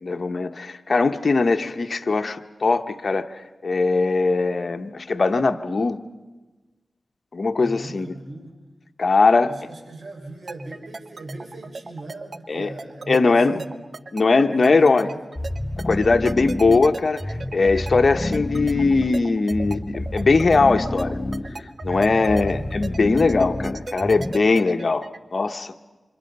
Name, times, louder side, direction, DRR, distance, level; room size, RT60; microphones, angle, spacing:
voice 1, 0.0-3.3 3.6-6.0 7.3-8.1 9.0-9.5 12.5-12.7 13.1-13.6 14.1-15.1 15.8-21.2 21.8-25.7, left 3 dB, 60° left, 1.0 m, -20 dB
voice 2, 7.6-8.6 9.4-13.8 14.4-15.2 22.1-22.7, right 2 dB, 75° right, 5.2 m, -38 dB
sound 1, 10.5-25.2, right 3 dB, 55° right, 0.7 m, -37 dB
sound 2, 15.4-24.6, left 1 dB, 20° left, 0.9 m, -29 dB
28.0 x 26.0 x 5.4 m
cardioid pair, 60°, 0 cm